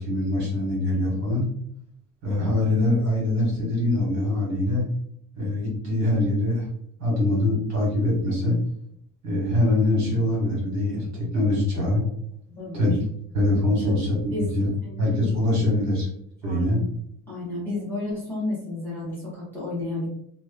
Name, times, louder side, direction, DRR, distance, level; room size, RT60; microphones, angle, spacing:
voice 1, 0.0-1.4 2.2-4.8 5.4-6.7 7.0-8.6 9.2-12.0 12.7-12.9 13.3-14.7 15.0-16.1 16.4-16.8, left 1 dB, 45° right, -4 dB, 1.5 m, -23 dB
voice 2, 12.5-12.9 13.8-14.5 14.8-15.1 16.4-16.9 17.3-20.1, left 2 dB, 5° left, -9 dB, 0.8 m, -32 dB
2.9 x 2.2 x 2.2 m, 0.69 s
cardioid pair, 140°, 37 cm